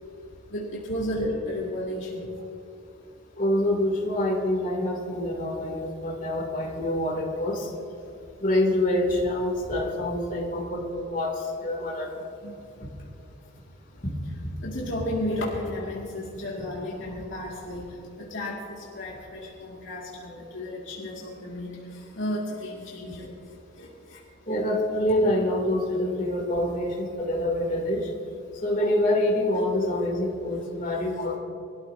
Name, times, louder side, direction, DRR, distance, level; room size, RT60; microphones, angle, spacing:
voice 1, 0.5-2.2 12.4-12.5 14.6-21.8 22.1-23.3 23.8-23.9 29.5-29.6, left 1 dB, 65° left, -5 dB, 2.4 m, -33 dB
voice 2, 3.4-7.7 8.4-12.2 14.0-14.1 24.5-28.1 28.6-31.4, left 1 dB, 40° left, -4 dB, 3.1 m, -26 dB
23.5 x 13.5 x 2.9 m, 2.7 s
head